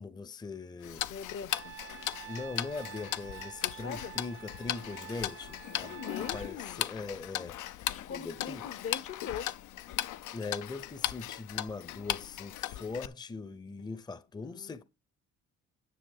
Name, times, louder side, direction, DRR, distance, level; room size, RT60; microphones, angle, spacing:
voice 1, 0.0-1.1 2.1-7.6 8.1-8.6 10.3-14.8, left 4 dB, 15° left, 0.6 m, -41 dB
Tick-tock, 0.8-13.1, left 13 dB, 80° left, 0.6 m, -38 dB
voice 2, 1.0-1.7 3.6-4.1 5.8-6.8 7.9-9.5 14.4-14.8, left 7 dB, 45° left, 0.8 m, -42 dB
Trumpet, 1.5-6.6, right 10 dB, 40° right, 0.6 m, -48 dB
10.0 x 6.7 x 4.7 m
cardioid pair, 90°, 30 cm